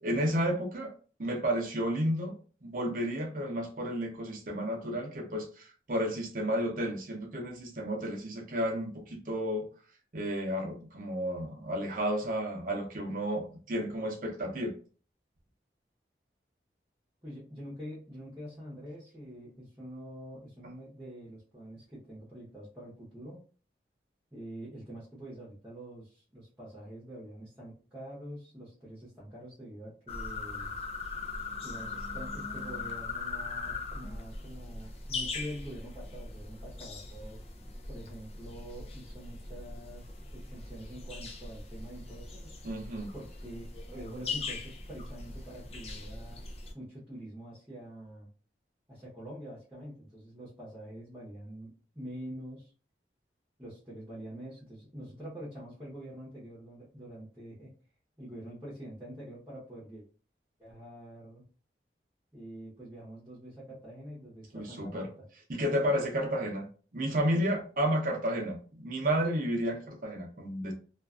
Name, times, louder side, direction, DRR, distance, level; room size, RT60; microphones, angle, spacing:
voice 1, 0.0-0.9 1.2-2.3 2.6-9.6 10.1-14.7 42.6-43.1 64.5-65.1 65.5-66.7 66.9-70.7, equal, 50° right, 1 dB, 0.7 m, -32 dB
voice 2, 17.2-23.4 24.3-30.7 31.6-37.4 37.9-40.1 40.3-42.6 43.1-46.4 46.7-48.3 48.9-52.7 53.6-57.7 58.2-60.0 60.6-61.4 62.3-65.3, equal, 15° right, -8 dB, 0.8 m, -45 dB
sound 1, 30.1-46.7, left 3 dB, 35° left, 0.5 m, -40 dB
2.5 x 2.3 x 2.4 m, 0.39 s
head